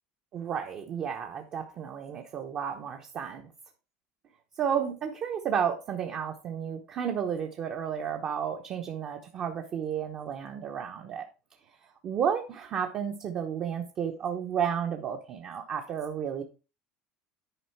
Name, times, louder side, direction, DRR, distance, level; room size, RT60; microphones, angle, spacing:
voice 1, 0.3-3.4 4.6-11.3 12.0-16.4, right 8 dB, 35° right, 2 dB, 1.0 m, -32 dB
10.0 x 5.1 x 4.5 m, 0.32 s
cardioid pair, 165°, 4 cm